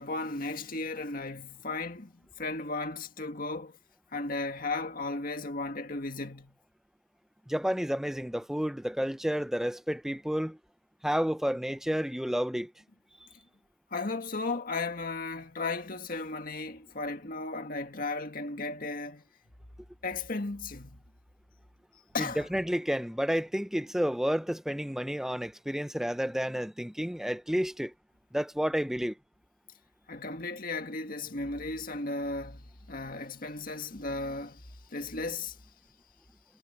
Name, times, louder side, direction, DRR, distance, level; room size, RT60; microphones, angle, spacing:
voice 1, 0.0-3.7 4.1-6.5 13.9-19.2 20.0-21.0 22.1-22.4 30.1-35.6, left 3 dB, 50° left, 2.0 m, -35 dB
voice 2, 7.5-10.6 11.0-12.7 22.2-27.9 28.3-29.2, equal, ahead, 0.6 m, -30 dB
head